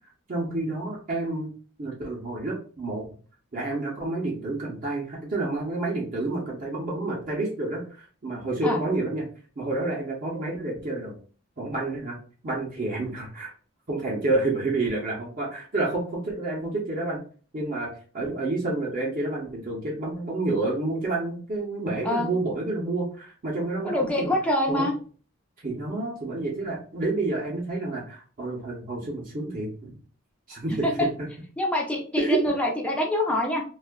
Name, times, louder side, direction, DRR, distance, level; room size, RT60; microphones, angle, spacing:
voice 1, 0.3-1.5 1.8-3.0 3.5-9.2 9.6-11.2 11.6-12.2 12.4-13.5 13.9-17.2 17.5-24.3 24.7-24.9 25.6-29.9 30.5-31.1 32.2-32.4, right 2 dB, 40° right, -3 dB, 0.7 m, -29 dB
voice 2, 23.8-25.0 30.8-31.1 31.6-33.6, left 1 dB, 5° left, -1 dB, 0.4 m, -25 dB
2.6 x 2.3 x 2.2 m, 0.41 s
head